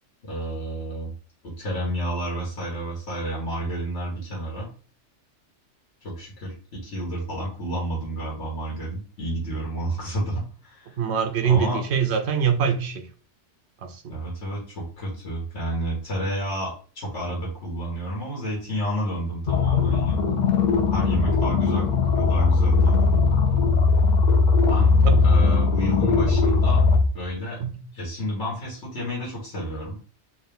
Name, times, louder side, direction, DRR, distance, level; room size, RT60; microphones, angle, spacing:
voice 1, 0.2-1.1 1.4-4.7 6.0-6.5 6.8-11.0 11.4-11.8 14.1-20.4 20.9-23.1 24.6-24.9 25.2-26.8 27.1-27.6 27.9-30.0, right 1 dB, 70° left, 1.7 m, -30 dB
voice 2, 11.0-13.1 13.8-14.2 25.0-25.2 27.6-27.8, right 7 dB, 70° right, 0.9 m, -24 dB
sound 1, 19.5-27.0, left 4 dB, 50° left, 0.6 m, -19 dB
3.8 x 2.6 x 3.4 m
omnidirectional pair, 1.2 m